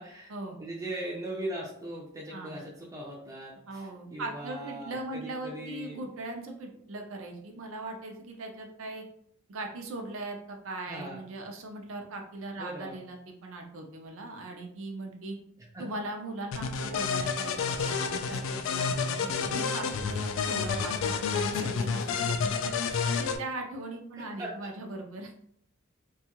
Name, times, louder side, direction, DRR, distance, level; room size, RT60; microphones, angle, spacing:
voice 1, 0.0-0.3 0.6-6.1 10.9-11.2 12.6-13.0 15.7-15.8 21.5-21.9 24.2-24.5, right 1 dB, 15° right, -5 dB, 0.4 m, -39 dB
voice 2, 3.7-9.0 9.5-15.4 15.8-22.5 22.9-25.3, right 2 dB, 80° right, 2 dB, 0.5 m, -39 dB
sound 1, 16.5-23.4, left 5 dB, 75° left, 0.3 m, -30 dB
2.6 x 2.3 x 2.9 m, 0.68 s
head